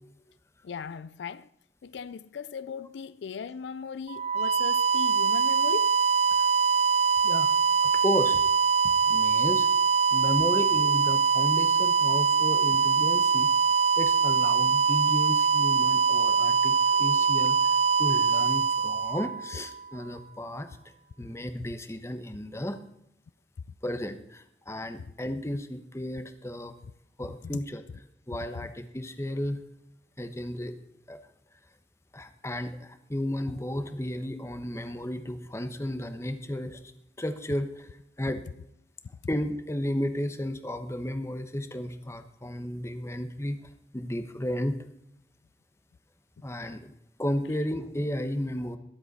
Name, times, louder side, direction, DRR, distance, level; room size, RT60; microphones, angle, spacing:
voice 1, 0.6-1.5 1.8-6.0 27.5-27.6, left 6 dB, 75° left, 0.4 m, -38 dB
sound 1, 4.1-19.9, right 6 dB, 35° right, 0.4 m, -23 dB
voice 2, 7.2-7.5 8.0-8.4 9.1-9.7 10.1-13.5 14.0-17.6 18.0-20.7 21.2-22.8 23.8-26.7 27.2-27.8 28.3-29.6 30.2-30.7 31.1-31.2 32.1-36.8 37.2-37.9 38.2-38.4 39.3-43.6 43.9-44.8 46.4-46.9 47.2-48.8, left 1 dB, 15° left, 1.1 m, -33 dB
22.0 x 7.9 x 4.2 m
head